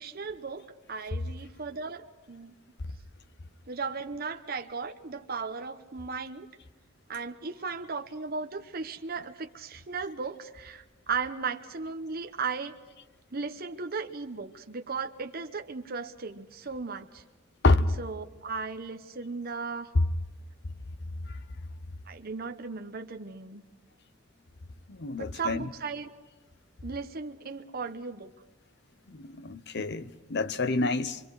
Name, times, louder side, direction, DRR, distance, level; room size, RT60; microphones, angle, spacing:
voice 1, 0.0-2.5 3.7-6.5 7.1-12.8 13.3-17.2 18.0-19.9 22.1-23.6 25.2-26.1 26.8-28.3, right 4 dB, 50° right, 0.9 m, -36 dB
voice 2, 24.9-25.7 29.1-31.2, left 2 dB, 55° left, 0.9 m, -27 dB
25.5 x 24.5 x 4.8 m
head